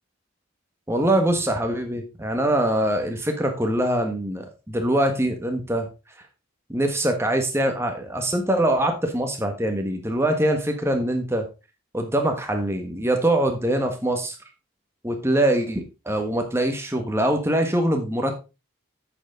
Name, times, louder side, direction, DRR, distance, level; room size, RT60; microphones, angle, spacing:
voice 1, 0.9-5.9 6.7-11.5 11.9-14.3 15.0-18.3, right 1 dB, 10° right, 4 dB, 1.4 m, -23 dB
8.8 x 6.9 x 3.8 m, 0.28 s
head